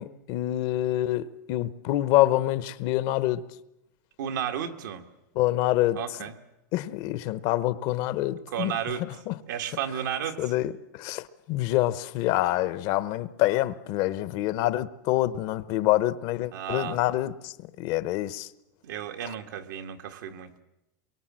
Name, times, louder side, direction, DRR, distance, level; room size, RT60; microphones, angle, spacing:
voice 1, 0.0-3.4 5.3-6.0 6.7-9.4 10.4-18.5, left 15 dB, 50° left, 0.9 m, -26 dB
voice 2, 4.2-5.1 5.9-6.4 8.5-9.1 9.5-10.5 16.5-17.0 18.8-20.6, right 9 dB, 80° right, 1.9 m, -33 dB
23.5 x 23.0 x 7.6 m
supercardioid pair, 145°, 10 cm